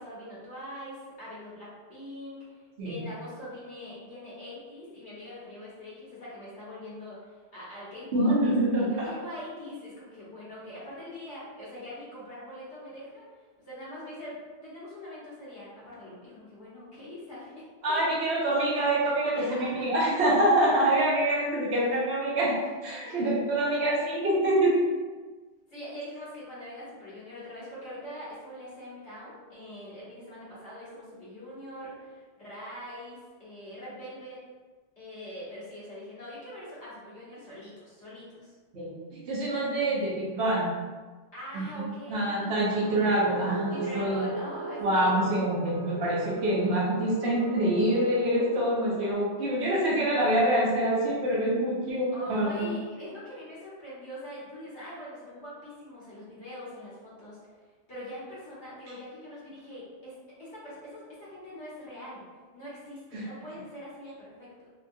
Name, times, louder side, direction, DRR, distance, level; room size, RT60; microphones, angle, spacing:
voice 1, 0.0-2.6 2.9-13.2 13.7-17.6 17.9-18.1 19.3-19.9 22.3-22.4 23.0-23.3 25.7-34.4 35.0-38.5 41.3-42.6 43.7-45.2 52.1-57.4 57.9-60.1 60.4-62.2 62.5-64.7, left 1 dB, 70° left, -9 dB, 1.6 m, -43 dB
voice 2, 8.1-8.9 17.8-24.8 38.7-40.7 41.5-44.3 44.8-52.7 63.1-63.3, right 1 dB, 70° right, -4 dB, 1.0 m, -26 dB
sound 1, 42.7-49.1, right 3 dB, 25° right, 1.4 m, -37 dB
3.5 x 2.2 x 2.6 m, 1.4 s
omnidirectional pair, 1.2 m